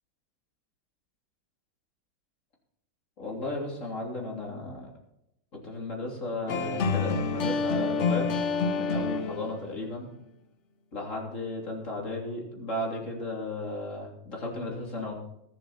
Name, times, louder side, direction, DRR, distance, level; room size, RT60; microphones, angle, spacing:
voice 1, 3.2-4.9 5.5-8.3 8.8-10.1 10.9-15.1, left 2 dB, 35° left, -1 dB, 3.4 m, -34 dB
sound 1, 6.5-9.7, left 4 dB, 60° left, 0.7 m, -28 dB
20.5 x 7.7 x 4.3 m, 0.83 s
omnidirectional pair, 2.3 m